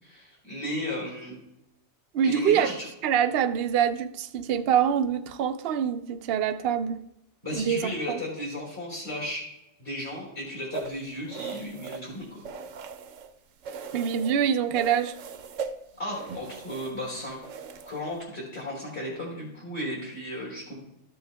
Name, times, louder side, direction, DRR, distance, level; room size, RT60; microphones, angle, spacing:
voice 1, 0.0-1.3 2.2-2.9 7.4-9.4 9.8-12.4 16.0-17.4 17.9-20.8, left 1 dB, 45° left, -4 dB, 3.8 m, -34 dB
voice 2, 2.1-2.7 3.0-7.0 7.5-8.2 13.9-15.1, right 8 dB, 60° right, 7 dB, 0.7 m, -25 dB
sound 1, 10.7-13.3 13.6-14.4 14.7-18.2, right 5 dB, 75° right, 1.0 m, -39 dB
13.5 x 7.8 x 3.4 m, 0.85 s
omnidirectional pair, 1.3 m